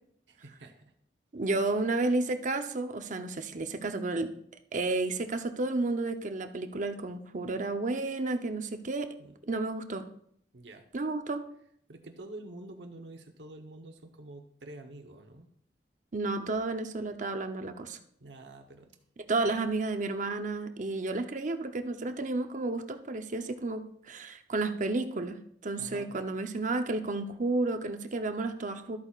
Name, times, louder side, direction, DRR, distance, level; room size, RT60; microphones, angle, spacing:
voice 1, 0.3-0.9 9.2-9.4 10.5-10.8 11.9-15.5 18.2-18.9 19.4-19.6 25.8-26.1, right 2 dB, 85° right, 4 dB, 1.0 m, -47 dB
voice 2, 1.3-4.3 4.7-9.1 9.5-10.1 10.9-11.4 16.1-18.0 19.2-29.0, right 2 dB, 45° right, 7 dB, 0.7 m, -32 dB
13.0 x 8.5 x 2.4 m, 0.68 s
head